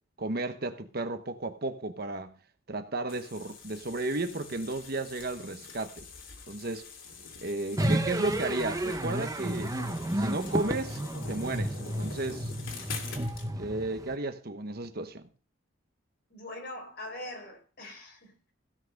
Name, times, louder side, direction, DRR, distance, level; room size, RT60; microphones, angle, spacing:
voice 1, 0.2-2.3 2.7-6.1 6.5-6.8 7.4-9.7 10.2-12.5 13.6-15.2, right 2 dB, 45° right, 1.0 m, -34 dB
sound 1, 3.1-13.5, left 4 dB, 75° left, 2.8 m, -45 dB
sound 2, 7.8-14.2, right 1 dB, 15° right, 0.8 m, -32 dB
voice 2, 16.3-18.5, left 1 dB, 50° left, 4.3 m, -42 dB
16.0 x 5.8 x 6.4 m
head